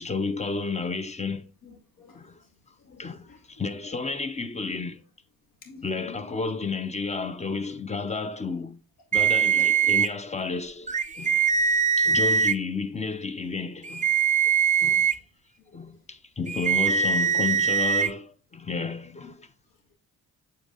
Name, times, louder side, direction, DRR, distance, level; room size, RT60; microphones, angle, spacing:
voice 1, 0.0-1.4 2.1-2.4 3.0-5.0 5.8-8.8 9.1-11.4 12.0-14.1 14.8-15.0 15.7-19.3, left 4 dB, 20° left, 0.7 m, -31 dB
voice 2, 1.6-2.5 2.8-3.6 5.6-6.4 10.8-10.9 11.2-11.7 14.4-14.5 14.8-15.3 15.6-16.0 19.0-19.3 19.7-19.9, left 5 dB, 75° left, 2.3 m, -52 dB
sound 1, 9.1-10.1 10.9-12.5 13.8-15.1 16.5-18.1, right 6 dB, 25° right, 0.5 m, -22 dB
7.8 x 4.2 x 3.8 m
cardioid pair, 80°, 33 cm